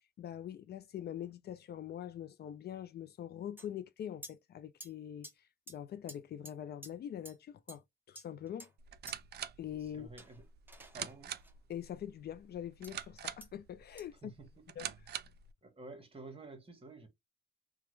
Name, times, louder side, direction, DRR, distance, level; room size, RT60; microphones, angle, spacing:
voice 1, 0.2-5.3 5.7-8.7 9.6-10.1 11.7-14.3 14.8-14.9, left 10 dB, 55° left, 0.4 m, -43 dB
sound 1, 3.6-3.7 4.2-4.3 4.8-4.9 5.2-5.3 5.7-5.8 6.1-6.2 6.4-6.5 6.8-6.9 7.2-7.3 7.7-7.8 8.1-8.7 9.1-9.2 10.2-11.5 12.8-12.9 13.4-13.5 14.0-14.1, right 1 dB, 10° right, 0.9 m, -51 dB
sound 2, 8.8-15.5, right 10 dB, 55° right, 0.4 m, -46 dB
voice 2, 9.8-10.5 10.9-11.3 14.2-14.8 15.6-17.1, right 3 dB, 30° right, 1.3 m, -51 dB
3.0 x 2.2 x 3.2 m
cardioid pair, 90°, 20 cm